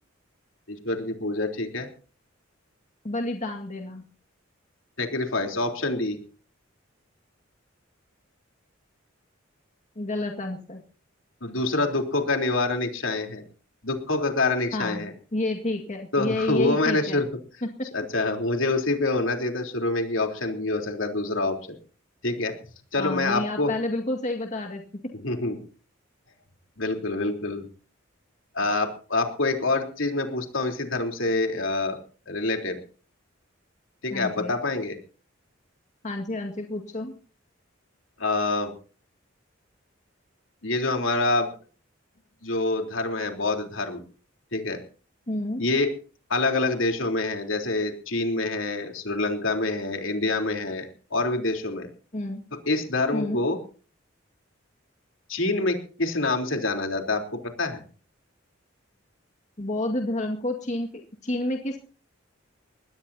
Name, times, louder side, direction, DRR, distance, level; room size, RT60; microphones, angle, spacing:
voice 1, 0.7-1.9 5.0-6.2 11.4-13.4 13.8-15.1 16.1-17.3 17.9-21.6 22.2-22.5 22.9-23.7 25.2-25.6 26.8-27.6 28.5-32.0 32.3-32.8 34.0-35.0 38.2-38.7 40.6-41.5 42.4-44.0 44.5-44.8 45.6-45.9 46.3-51.9 52.7-53.6 55.3-57.8, left 2 dB, 75° left, 4 dB, 3.6 m, -26 dB
voice 2, 3.0-4.0 10.0-10.8 14.7-17.2 17.6-17.9 23.0-25.1 34.1-34.5 36.0-37.1 45.3-45.6 52.1-52.4 53.1-53.4 59.6-60.9 61.2-61.8, left 1 dB, 35° left, 3 dB, 2.0 m, -30 dB
22.5 x 19.5 x 2.8 m, 0.39 s
head